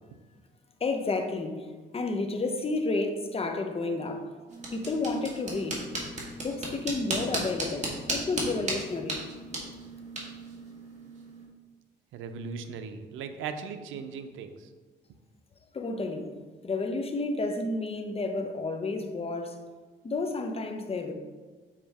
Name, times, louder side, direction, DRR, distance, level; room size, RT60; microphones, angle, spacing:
voice 1, 0.8-1.6 1.9-4.3 4.7-5.8 6.4-9.2 15.7-16.3 16.6-19.6 20.0-21.1, left 3 dB, 30° left, 5 dB, 0.9 m, -31 dB
sound 1, 4.5-11.5, right 1 dB, 35° right, 2.0 m, -36 dB
voice 2, 12.1-14.7, right 5 dB, 85° right, 8 dB, 0.6 m, -38 dB
7.3 x 4.9 x 3.5 m, 1.4 s
cardioid pair, 90°, 20 cm